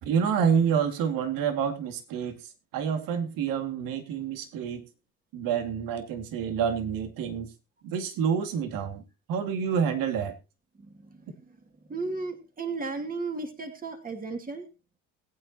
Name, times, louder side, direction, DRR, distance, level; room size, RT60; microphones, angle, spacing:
voice 1, 0.0-4.8 5.3-7.5 7.8-9.0 9.3-10.3, right 7 dB, 65° right, 7 dB, 2.4 m, -28 dB
voice 2, 10.8-14.7, right 3 dB, 25° right, 4 dB, 2.5 m, -35 dB
20.5 x 9.1 x 2.9 m, 0.30 s
supercardioid pair, 80°, 36 cm